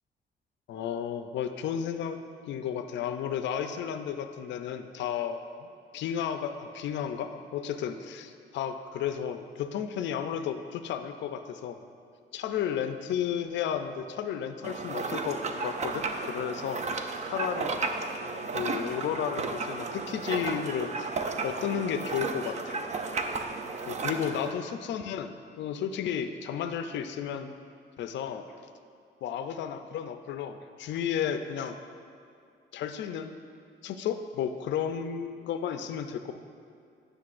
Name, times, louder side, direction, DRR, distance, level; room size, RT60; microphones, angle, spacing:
voice 1, 0.7-5.7 5.9-11.8 12.3-16.8 17.3-17.8 18.5-21.1 21.4-22.8 23.9-27.5 28.0-28.7 29.2-31.8 32.7-33.3 33.8-36.3, left 8 dB, 65° left, 8 dB, 0.4 m, -33 dB
sound 1, 14.6-24.5, right 4 dB, 35° right, 0.5 m, -33 dB
9.5 x 6.2 x 2.5 m, 2.3 s
cardioid pair, 90°, 20 cm